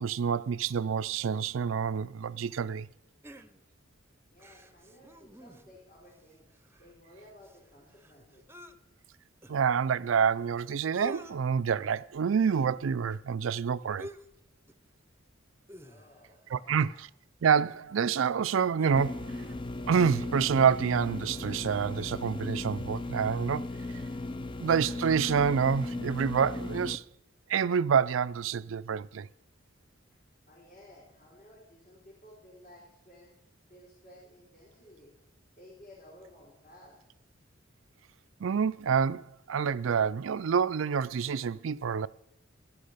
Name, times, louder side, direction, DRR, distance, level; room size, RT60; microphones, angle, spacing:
voice 1, 0.0-2.9 9.5-14.1 16.5-16.9 17.4-19.4 19.9-23.7 24.6-27.0 27.5-29.3 38.4-42.1, right 6 dB, 75° right, 0.4 m, -27 dB
sound 1, 3.2-3.9 4.4-5.8 6.2-6.3 6.5-8.7 9.4-9.5 10.4-10.5 10.7-11.3 11.9-12.2 14.0-14.4 14.7-14.9 15.7-16.4 17.4-17.5 18.1-19.1 19.5-19.6, left 1 dB, 10° right, 0.8 m, -48 dB
voice 2, 4.3-6.5 6.8-8.5 15.8-17.0 30.5-33.3 33.7-35.1 35.6-37.0, left 1 dB, 50° left, 4.2 m, -55 dB
sound 2, 19.0-27.0, left 2 dB, 25° left, 0.6 m, -37 dB
13.0 x 11.0 x 6.6 m
head